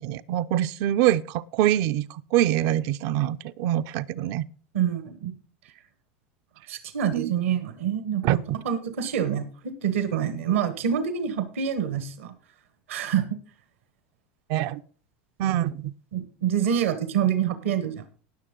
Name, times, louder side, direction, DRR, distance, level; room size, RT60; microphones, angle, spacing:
voice 1, 0.0-4.5 7.1-7.2 8.2-8.4 14.5-14.8 15.4-15.9, right 13 dB, 55° right, 0.5 m, -24 dB
voice 2, 4.7-5.3 6.7-12.3 12.9-13.4 16.1-18.0, right 8 dB, 80° right, 1.4 m, -26 dB
19.0 x 6.5 x 3.8 m
hypercardioid pair, 95°, 7 cm